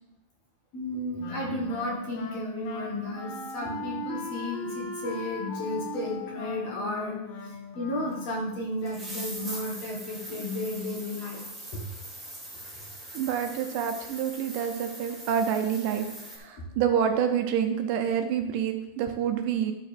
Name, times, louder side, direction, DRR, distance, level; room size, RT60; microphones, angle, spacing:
voice 1, 0.7-7.2 7.4-11.8 13.4-13.5 16.4-16.6, left 1 dB, 60° left, -3 dB, 2.1 m, -33 dB
Wind instrument woodwind instrument, 1.2-8.6, left 3 dB, 85° left, 2.7 m, -38 dB
sound 1, 8.1-8.2 8.8-16.4, right 1 dB, ahead, 1.5 m, -42 dB
voice 2, 13.1-16.1 16.3-19.7, right 8 dB, 80° right, 6 dB, 2.1 m, -27 dB
12.0 x 6.4 x 3.3 m, 0.95 s
omnidirectional pair, 4.0 m